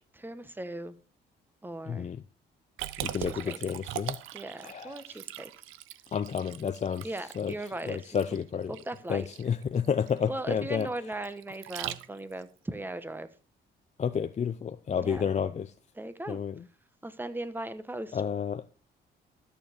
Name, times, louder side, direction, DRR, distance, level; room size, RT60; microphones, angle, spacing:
voice 1, 0.1-0.9 1.6-2.1 3.2-3.6 4.3-5.5 7.0-8.2 8.7-9.3 10.3-13.3 15.0-15.2 15.9-16.4 17.0-18.2, right 2 dB, 10° right, 1.1 m, -38 dB
voice 2, 1.9-2.2 3.0-4.2 4.6-5.0 6.1-7.1 7.4-7.5 7.9-8.7 9.1-10.9 14.0-15.7 16.3-16.6 18.1-18.6, left 7 dB, 35° left, 0.5 m, -30 dB
Liquid, 2.8-12.4, right 13 dB, 90° right, 0.6 m, -41 dB
13.0 x 7.0 x 4.4 m
cardioid pair, 90°, 20 cm